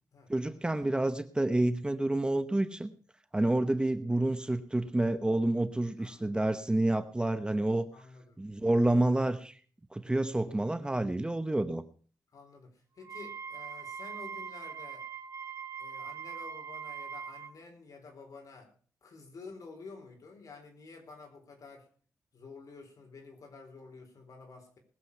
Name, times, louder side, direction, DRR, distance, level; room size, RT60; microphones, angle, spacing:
voice 1, 0.3-2.9 3.3-7.9 8.4-9.6 9.9-11.8, right 1 dB, 15° right, 10 dB, 0.9 m, -29 dB
voice 2, 6.0-6.3 7.9-8.9 12.3-15.1 15.8-18.7 19.0-21.9 22.3-24.8, left 4 dB, 60° left, 4 dB, 4.4 m, -50 dB
Wind instrument woodwind instrument, 13.0-17.5, right 6 dB, 55° right, 1.4 m, -42 dB
20.0 x 7.8 x 5.6 m, 0.42 s
wide cardioid pair, 110°, 7 cm